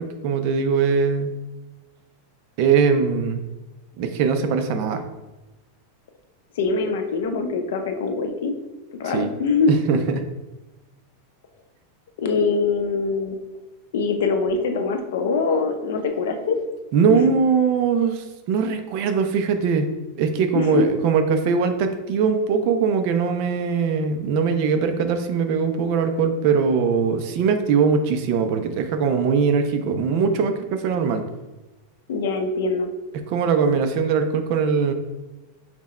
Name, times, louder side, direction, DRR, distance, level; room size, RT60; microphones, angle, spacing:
voice 1, 0.0-1.4 2.6-3.4 4.0-5.0 9.0-9.3 9.7-10.2 16.9-19.9 20.2-31.2 33.3-34.9, right 5 dB, 40° right, 7 dB, 0.4 m, -21 dB
voice 2, 6.6-8.5 9.0-9.8 12.2-13.4 13.9-16.6 17.1-17.2 20.5-20.9 32.1-32.9, left 4 dB, 70° left, 6 dB, 0.6 m, -23 dB
5.8 x 2.1 x 4.1 m, 1.1 s
supercardioid pair, 175°, 0 cm